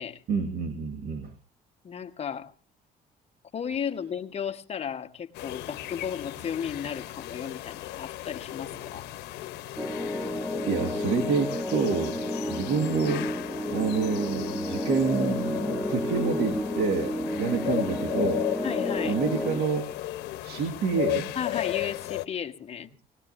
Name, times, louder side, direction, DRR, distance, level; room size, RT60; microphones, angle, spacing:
voice 1, 0.3-1.3 10.3-12.2 12.5-13.4 13.7-18.4 19.0-20.0 20.4-21.3, right 5 dB, 70° right, 5 dB, 1.9 m, -28 dB
voice 2, 1.8-2.5 3.5-9.0 18.6-19.2 21.3-22.9, left 8 dB, 40° left, 6 dB, 1.4 m, -34 dB
sound 1, 5.3-22.3, left 17 dB, 85° left, 0.9 m, -36 dB
sound 2, 9.8-19.6, left 1 dB, 5° right, 1.2 m, -31 dB
19.5 x 19.0 x 2.6 m, 0.33 s
cardioid pair, 110°, 17 cm